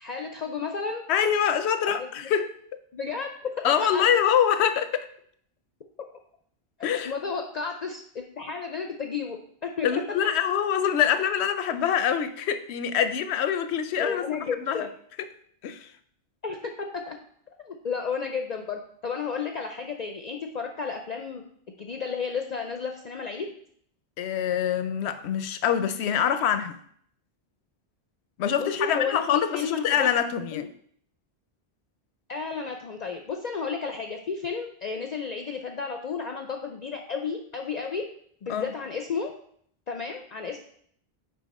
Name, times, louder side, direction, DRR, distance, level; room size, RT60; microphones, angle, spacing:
voice 1, 0.0-1.0 1.9-2.3 2.9-3.3 3.6-4.1 6.8-9.9 14.0-14.9 16.4-16.6 16.9-17.1 17.7-21.4 21.8-23.5 28.6-30.1 30.5-30.7 32.3-38.0 38.4-39.3 39.9-40.6, left 5 dB, 50° left, 0.5 m, -32 dB
voice 2, 1.1-2.8 3.6-5.1 6.8-7.1 9.8-14.9 15.6-15.9 24.2-26.7 28.4-30.7 38.5-38.7, left 8 dB, 90° left, 0.9 m, -25 dB
5.6 x 4.8 x 4.1 m
omnidirectional pair, 1.1 m